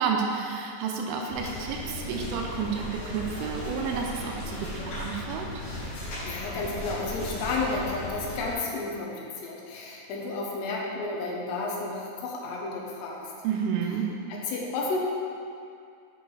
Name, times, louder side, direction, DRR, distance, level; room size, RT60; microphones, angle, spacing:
voice 1, 0.0-2.8 3.1-5.5 13.4-14.1, right 6 dB, 90° right, 0 dB, 3.2 m, -30 dB
sound 1, 1.3-8.5, left 1 dB, 55° left, 2.7 m, -36 dB
voice 2, 6.2-13.2 14.3-15.0, left 3 dB, 80° left, -2 dB, 2.7 m, -32 dB
8.7 x 6.2 x 3.3 m, 2.4 s
omnidirectional pair, 5.5 m